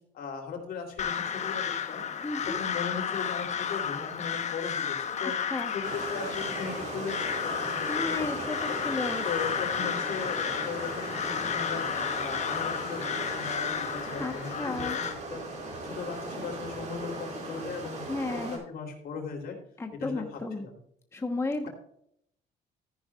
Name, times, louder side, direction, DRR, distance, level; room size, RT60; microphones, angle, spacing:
voice 1, 0.1-2.0 2.5-5.3 5.7-8.8 9.2-11.9 12.2-15.4 15.8-18.0 18.3-19.6 20.0-20.8, left 5 dB, 65° left, 3 dB, 3.5 m, -38 dB
Crow, 1.0-15.1, left 7 dB, 45° left, 1.2 m, -32 dB
voice 2, 2.2-2.6 5.2-5.7 7.9-9.2 14.2-15.0 18.1-18.6 19.8-20.7 21.1-21.7, left 3 dB, 15° left, 4 dB, 1.2 m, -33 dB
sound 1, 5.8-18.6, right 2 dB, 45° right, 5.0 m, -38 dB
14.0 x 10.5 x 2.5 m, 0.70 s
cardioid pair, 110°, 17 cm